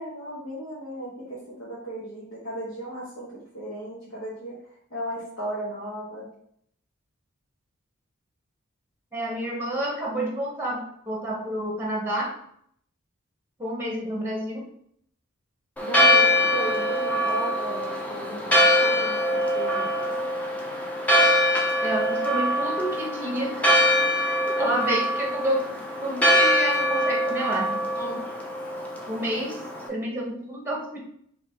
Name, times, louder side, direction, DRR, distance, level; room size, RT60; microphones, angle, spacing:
voice 1, 0.0-4.6 4.9-6.3 15.8-20.1, right 1 dB, 75° left, -7 dB, 1.1 m, -35 dB
voice 2, 9.1-12.4 13.6-14.7 21.8-23.7 24.2-28.2 29.1-31.0, right 1 dB, 10° right, -1 dB, 0.9 m, -29 dB
Church bell, 15.8-29.9, equal, 5° left, 0.5 m, -23 dB
4.6 x 2.9 x 3.5 m, 0.68 s
head